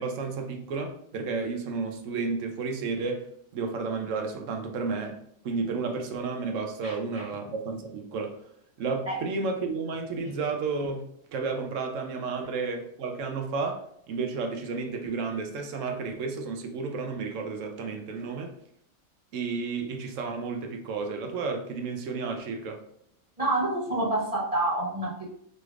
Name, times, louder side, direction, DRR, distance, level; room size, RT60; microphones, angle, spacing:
voice 1, 0.0-3.3 3.5-5.2 5.4-8.3 8.8-11.0 11.3-18.5 19.3-22.8, right 4 dB, 75° right, 4 dB, 1.0 m, -32 dB
voice 2, 6.8-7.3 9.1-9.2 23.4-25.3, right 2 dB, 35° right, -6 dB, 0.7 m, -28 dB
5.1 x 3.2 x 2.4 m, 0.70 s
omnidirectional pair, 1.4 m